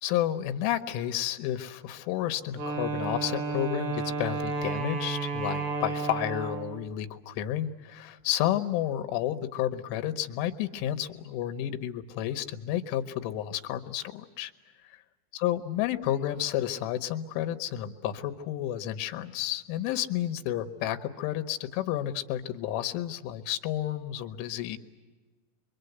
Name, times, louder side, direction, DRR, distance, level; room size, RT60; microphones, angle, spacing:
voice 1, 0.0-14.5 14.9-15.0 15.3-24.8, left 12 dB, 80° left, 9 dB, 3.4 m, -31 dB
Wind instrument woodwind instrument, 2.5-6.9, right 4 dB, 40° right, 4.1 m, -32 dB
27.0 x 24.0 x 8.0 m, 1.3 s
omnidirectional pair, 5.6 m